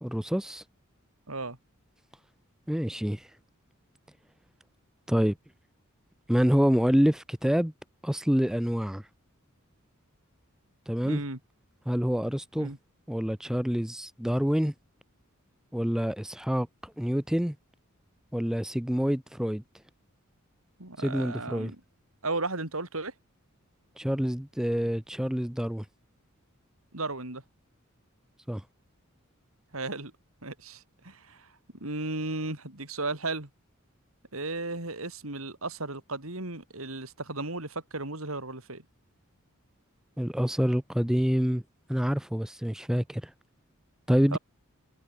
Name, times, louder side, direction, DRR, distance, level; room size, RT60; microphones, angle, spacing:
voice 1, 0.0-0.6 2.7-3.3 5.1-5.4 6.3-7.7 8.0-9.0 10.9-11.2 11.9-12.7 13.1-14.7 15.7-17.6 18.3-19.6 21.0-21.7 24.0-25.8 28.5-28.6 40.2-41.6 41.9-43.3 44.1-44.4, equal, 5° right, 0.4 m, -27 dB
voice 2, 11.1-11.4 12.6-12.8 20.8-21.8 22.2-23.1 26.9-27.4 29.7-30.1 30.4-31.5 31.8-33.5 34.3-38.8 44.3-44.4, right 2 dB, 80° right, 5.2 m, -35 dB
head